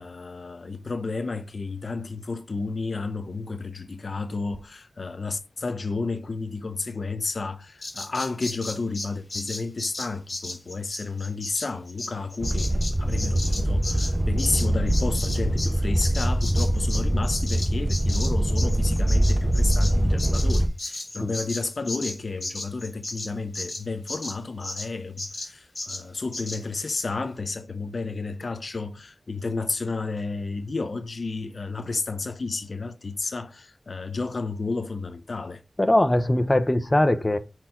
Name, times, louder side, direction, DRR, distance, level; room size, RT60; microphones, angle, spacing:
voice 1, 0.0-35.6, left 3 dB, 70° left, 0.6 m, -32 dB
Bird vocalization bird call bird song, 7.8-15.7 16.0-24.9 25.2-25.5 25.8-26.0 26.3-26.6 26.9-27.1, left 2 dB, 45° left, 2.4 m, -35 dB
sound 1, 12.4-20.7, right 1 dB, 25° right, 1.0 m, -23 dB
voice 2, 35.8-37.4, left 1 dB, 25° left, 0.7 m, -21 dB
5.7 x 4.5 x 3.7 m
wide cardioid pair, 85°, 0 cm